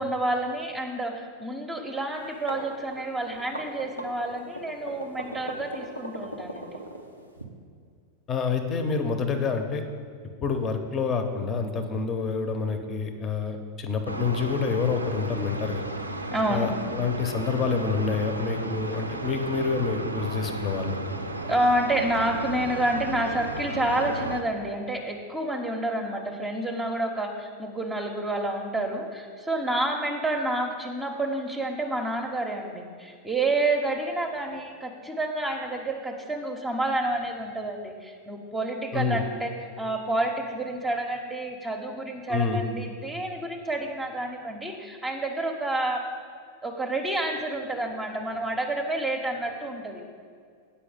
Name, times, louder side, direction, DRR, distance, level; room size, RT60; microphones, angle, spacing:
voice 1, 0.0-6.8 16.3-16.7 21.5-46.0 46.6-50.0, right 1 dB, 10° right, 1 dB, 0.9 m, -29 dB
sound 1, 2.2-7.4, right 1 dB, 90° left, 0.9 m, -38 dB
voice 2, 8.3-9.8 10.4-15.8 16.5-21.0 38.9-39.2 42.3-42.6, left 5 dB, 30° left, 7 dB, 0.9 m, -27 dB
sound 2, 14.1-24.4, right 2 dB, 85° right, 0.5 m, -34 dB
8.4 x 5.6 x 7.8 m, 2.2 s
figure-of-eight pair, 90°, 0 cm